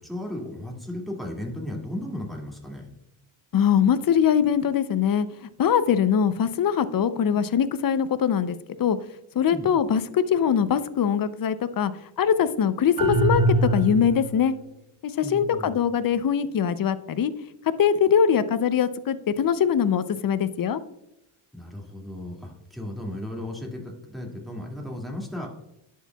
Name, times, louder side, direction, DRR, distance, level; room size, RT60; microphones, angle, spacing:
voice 1, 0.0-2.9 9.5-9.7 15.2-15.8 21.5-25.5, left 1 dB, ahead, -1 dB, 2.2 m, -35 dB
voice 2, 3.5-9.0 9.3-11.9 12.2-14.6 15.0-17.3 17.8-20.8, left 8 dB, 45° left, 14 dB, 0.6 m, -22 dB
sound 1, 13.0-14.4, right 2 dB, 45° right, 0.8 m, -23 dB
11.0 x 4.7 x 2.3 m, 0.82 s
cardioid pair, 60°, 49 cm